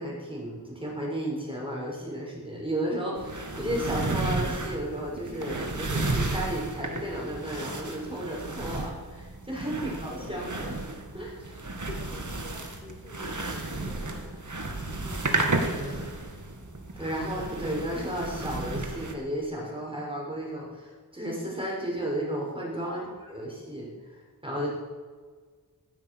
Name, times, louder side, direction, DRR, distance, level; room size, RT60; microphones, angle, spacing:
voice 1, 0.0-10.8 11.1-11.6 15.7-16.1 17.0-23.0 23.3-24.7, right 1 dB, 15° right, -3 dB, 6.6 m, -33 dB
sound 1, 3.2-19.1, right 2 dB, 50° right, 2.3 m, -33 dB
voice 2, 9.7-10.7 11.9-15.3 22.8-23.1, left 1 dB, 20° left, -3 dB, 3.7 m, -47 dB
16.5 x 13.0 x 6.5 m, 1.5 s
wide cardioid pair, 65°, 39 cm